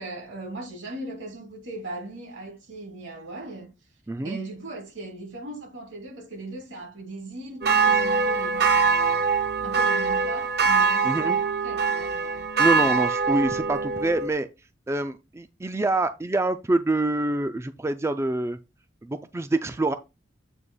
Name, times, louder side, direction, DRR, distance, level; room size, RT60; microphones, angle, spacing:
voice 1, 0.0-3.7 4.2-9.2 9.6-12.5, right 2 dB, 75° right, 2.9 m, -38 dB
voice 2, 4.1-4.4 11.0-11.4 12.6-14.5 14.9-18.6 19.0-19.9, right 2 dB, 15° right, 0.3 m, -26 dB
sound 1, 7.6-14.3, right 5 dB, 55° right, 0.7 m, -23 dB
7.9 x 2.9 x 5.4 m
head